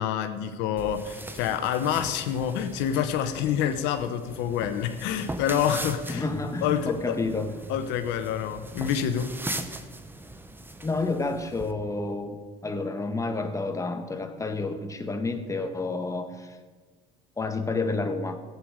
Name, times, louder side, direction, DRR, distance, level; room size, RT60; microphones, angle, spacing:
voice 1, 0.0-6.2 6.6-7.2 7.7-9.3, left 9 dB, 85° left, 9 dB, 0.9 m, -27 dB
sound 1, 0.8-11.7, right 2 dB, 10° right, 1.0 m, -40 dB
voice 2, 6.1-7.5 10.8-16.6 17.4-18.4, left 3 dB, 15° left, 5 dB, 1.5 m, -30 dB
15.5 x 8.9 x 5.1 m, 1.4 s
cardioid pair, 95°, 18 cm